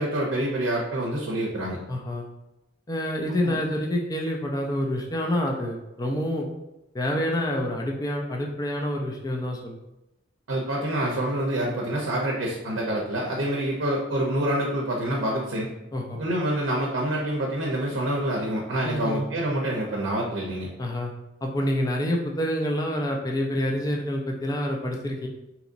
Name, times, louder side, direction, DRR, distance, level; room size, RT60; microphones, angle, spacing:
voice 1, 0.0-1.8 3.4-3.6 10.5-15.7 16.2-20.7, right 1 dB, 70° right, -2 dB, 0.6 m, -27 dB
voice 2, 1.9-2.3 2.9-6.5 6.9-9.7 15.9-16.2 18.8-19.2 20.8-21.1 21.4-25.3, left 1 dB, 20° left, 1 dB, 0.4 m, -27 dB
3.9 x 2.9 x 2.5 m, 0.93 s
head